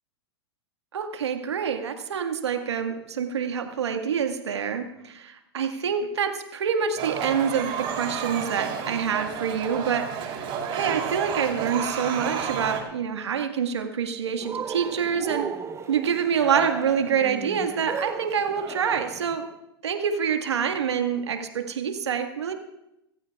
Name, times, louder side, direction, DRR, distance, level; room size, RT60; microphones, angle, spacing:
voice 1, 0.9-15.5 15.9-19.5 19.8-22.5, right 7 dB, 80° right, 5 dB, 1.8 m, -27 dB
sound 1, 7.0-12.8, right 7 dB, 40° right, 4.0 m, -31 dB
Cheering, 14.4-19.4, right 6 dB, 20° right, 0.7 m, -35 dB
24.0 x 15.0 x 2.4 m, 0.84 s
hypercardioid pair, 105°, 14 cm